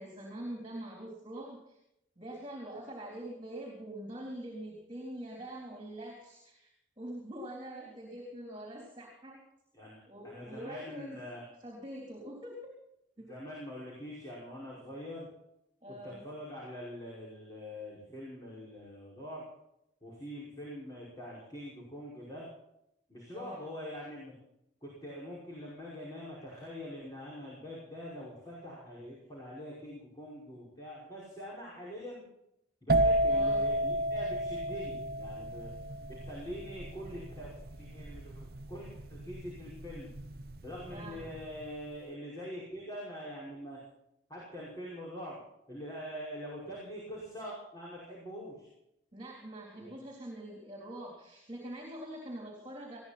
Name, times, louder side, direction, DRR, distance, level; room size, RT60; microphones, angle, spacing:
voice 1, 0.0-1.8 2.2-9.4 10.1-12.7 13.2-13.3 15.8-16.2 23.3-23.7 33.3-33.7 40.9-41.3 49.1-53.0, right 1 dB, 25° right, -1 dB, 3.7 m, -44 dB
voice 2, 10.2-11.5 13.2-15.3 16.0-19.5 20.0-22.5 23.1-24.3 24.8-32.2 32.8-35.7 36.1-37.5 37.8-40.1 40.6-43.8 44.3-45.4 45.7-48.7 49.8-50.1, equal, 20° left, -5 dB, 5.5 m, -44 dB
sound 1, 32.9-40.5 40.7-41.2, right 1 dB, 55° right, 0.8 m, -31 dB
20.5 x 16.0 x 4.3 m, 0.81 s
head